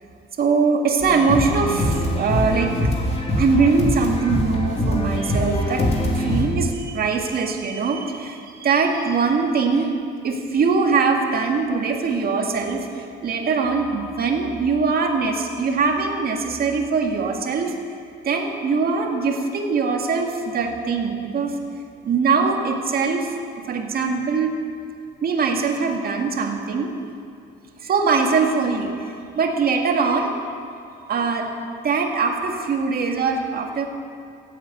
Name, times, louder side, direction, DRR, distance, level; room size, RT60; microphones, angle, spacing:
voice 1, 0.4-2.8 3.4-5.9 6.1-9.9 10.2-17.7 18.2-21.6 22.0-23.3 23.7-24.5 25.2-26.9 27.8-30.3 31.1-31.5 31.8-33.9, right 4 dB, 45° right, 3 dB, 2.0 m, -22 dB
sound 1, 1.0-6.4, left 1 dB, 30° left, 2.9 m, -23 dB
15.5 x 8.7 x 7.9 m, 2.4 s
cardioid pair, 110°, 21 cm